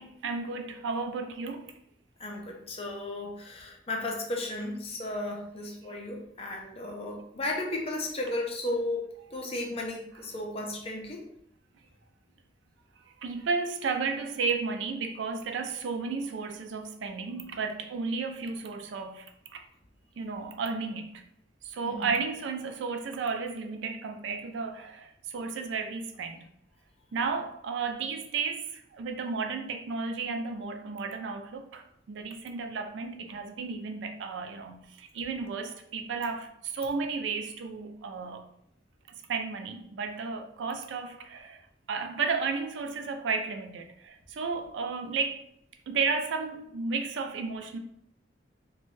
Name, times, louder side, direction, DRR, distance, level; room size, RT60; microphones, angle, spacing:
voice 1, 0.0-1.7 13.0-19.6 20.2-21.2 21.6-26.4 27.1-38.4 39.3-41.6 41.9-45.4 45.9-47.8, right 4 dB, 70° right, 0.3 m, -33 dB
voice 2, 2.2-11.2 21.8-22.1, left 2 dB, 30° left, 0.5 m, -34 dB
2.5 x 2.2 x 3.0 m
head